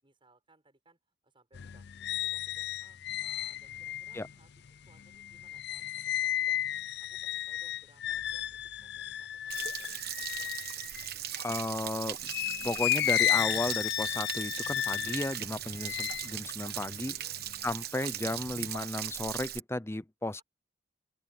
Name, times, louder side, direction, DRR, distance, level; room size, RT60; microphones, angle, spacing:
voice 1, 0.0-6.6 7.0-9.9 10.2-10.5 17.1-17.5 20.3-20.4, right 2 dB, 30° right, 7.3 m, -66 dB
sound 1, 1.5-11.7 12.2-17.7 18.1-18.7, left 12 dB, 65° left, 0.5 m, -34 dB
Stream / Splash splatter / Trickle dribble, 9.5-19.6, right 12 dB, 55° right, 1.2 m, -39 dB
voice 2, 11.4-12.2 12.6-17.2 17.6-20.4, left 1 dB, 15° left, 0.7 m, -34 dB
open air
head